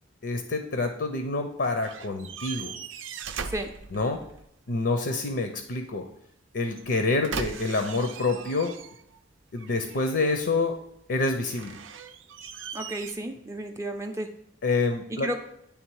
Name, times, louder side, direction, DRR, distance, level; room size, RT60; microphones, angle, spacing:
voice 1, 0.2-2.7 3.9-4.2 4.7-6.1 6.5-8.8 9.5-10.8 11.1-11.8 14.6-15.3, left 3 dB, 60° left, 6 dB, 0.6 m, -27 dB
sound 1, 1.8-4.5 6.7-9.2 9.6-10.4 11.4-13.1, right 6 dB, 90° right, 0.5 m, -39 dB
voice 2, 3.4-3.7 7.5-7.6 12.7-14.3 15.1-15.4, right 1 dB, 15° right, 4 dB, 0.4 m, -33 dB
9.4 x 3.5 x 4.6 m, 0.76 s
head